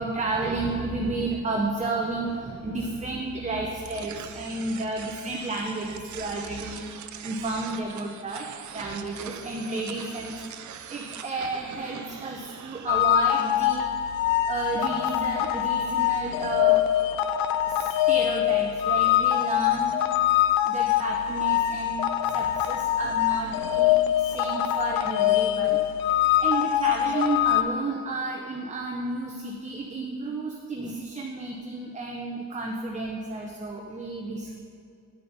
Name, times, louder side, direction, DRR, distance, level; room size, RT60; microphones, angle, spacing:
voice 1, 0.0-6.9 7.2-10.4 10.9-13.9 14.5-16.9 17.7-20.1 20.6-25.8 26.4-34.6, right 2 dB, 20° right, 0 dB, 0.7 m, -32 dB
sound 1, 3.9-13.0, right 9 dB, 60° right, 0.6 m, -42 dB
sound 2, 12.9-27.6, left 12 dB, 85° left, 0.5 m, -24 dB
9.7 x 5.0 x 5.7 m, 2.4 s
cardioid pair, 100°, 33 cm